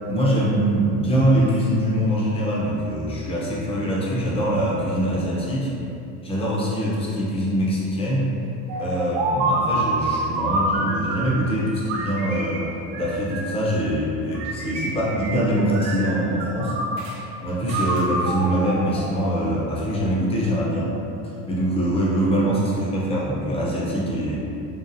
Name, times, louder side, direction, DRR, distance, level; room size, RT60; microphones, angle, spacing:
voice 1, 0.1-5.7 6.2-8.3 8.8-12.7 12.9-16.7 17.4-20.9 21.5-24.4, equal, 15° left, -6 dB, 0.6 m, -23 dB
sound 1, 8.7-11.5 11.9-13.7 14.3-15.5 15.7-17.2 17.7-19.5, right 2 dB, 50° right, 0.5 m, -27 dB
5.2 x 2.3 x 2.6 m, 2.9 s
cardioid pair, 145°, 38 cm